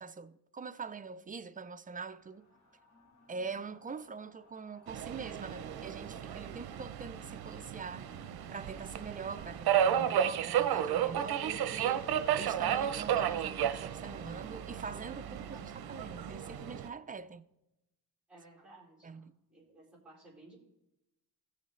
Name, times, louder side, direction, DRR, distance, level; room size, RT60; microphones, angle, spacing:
voice 1, 0.0-2.4 3.3-8.1 8.5-17.4 19.0-19.3, right 5 dB, 25° right, 0.3 m, -44 dB
sound 1, 2.1-16.8, left 2 dB, 50° left, 1.6 m, -60 dB
Subway metro underground, 4.9-16.9, right 9 dB, 80° right, 0.6 m, -33 dB
voice 2, 18.3-20.6, right 2 dB, 5° right, 3.8 m, -58 dB
16.5 x 6.6 x 3.1 m
wide cardioid pair, 125°, 37 cm